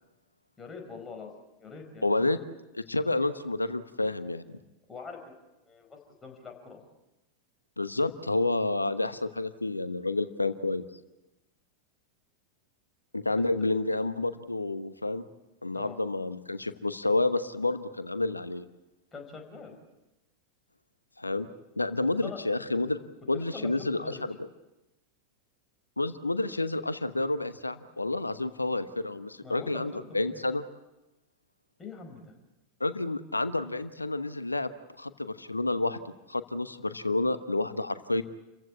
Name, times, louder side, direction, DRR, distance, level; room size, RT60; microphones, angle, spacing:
voice 1, 0.6-2.0 4.9-6.8 13.4-13.5 15.7-16.0 19.1-19.7 22.2-22.4 23.3-24.2 29.4-30.4 31.8-32.3, left 5 dB, 15° left, 2 dB, 5.1 m, -44 dB
voice 2, 2.0-2.4 2.7-4.4 7.8-10.8 13.1-15.2 15.6-18.6 21.2-21.5 21.8-23.0 23.3-24.4 26.0-30.6 32.8-34.7 35.0-36.0 36.3-38.2, left 2 dB, 80° left, 13 dB, 1.1 m, -29 dB
29.0 x 15.5 x 8.5 m, 0.98 s
figure-of-eight pair, 90°, 0 cm